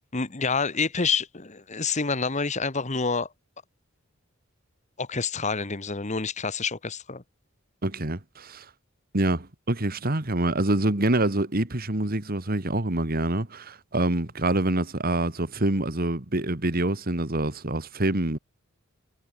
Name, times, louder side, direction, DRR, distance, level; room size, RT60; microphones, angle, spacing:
voice 1, 0.1-3.3 5.0-7.2, left 4 dB, 35° left, 1.4 m, -28 dB
voice 2, 7.8-8.7 9.1-18.4, right 1 dB, 45° right, 2.0 m, -26 dB
head